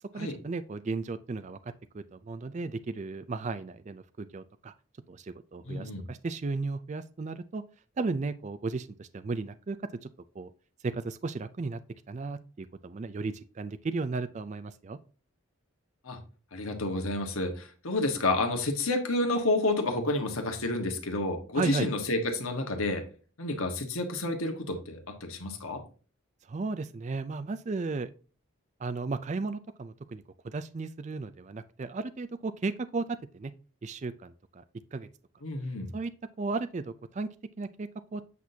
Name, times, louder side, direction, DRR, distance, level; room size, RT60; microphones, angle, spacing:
voice 1, 0.1-4.7 5.1-7.6 8.0-10.1 10.3-10.5 10.8-11.8 12.1-15.0 21.5-21.9 26.4-28.1 28.8-33.5 33.8-34.6 34.9-35.1 35.9-36.1 36.4-37.3 37.6-38.2, right 3 dB, 35° right, 11 dB, 0.4 m, -35 dB
voice 2, 5.7-6.0 16.0-16.2 16.5-23.0 23.4-25.8 35.4-35.9, left 2 dB, 80° left, 4 dB, 1.4 m, -30 dB
8.3 x 6.0 x 2.7 m, 0.38 s
head